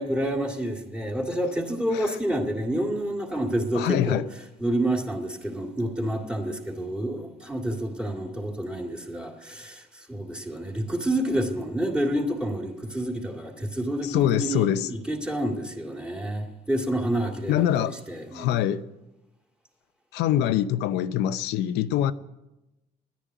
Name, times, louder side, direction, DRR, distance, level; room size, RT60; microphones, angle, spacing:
voice 1, 0.0-18.6, right 1 dB, 5° right, 2.1 m, -29 dB
voice 2, 3.7-4.2 14.0-14.9 17.5-18.0 18.3-18.8 20.1-22.1, left 11 dB, 85° left, 0.7 m, -24 dB
10.5 x 10.0 x 9.3 m
cardioid pair, 110°, 17 cm